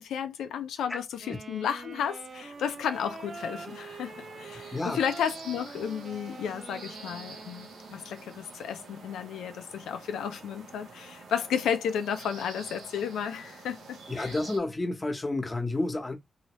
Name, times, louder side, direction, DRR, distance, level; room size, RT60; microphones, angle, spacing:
voice 1, 0.0-14.4, left 8 dB, 90° left, 0.5 m, -33 dB
Wind instrument woodwind instrument, 1.2-8.1, right 3 dB, 55° right, 0.8 m, -45 dB
sound 1, 2.1-14.6, right 3 dB, 90° right, 1.0 m, -48 dB
voice 2, 14.1-16.1, left 2 dB, 30° left, 1.1 m, -30 dB
2.8 x 2.8 x 3.0 m
supercardioid pair, 50°, 0 cm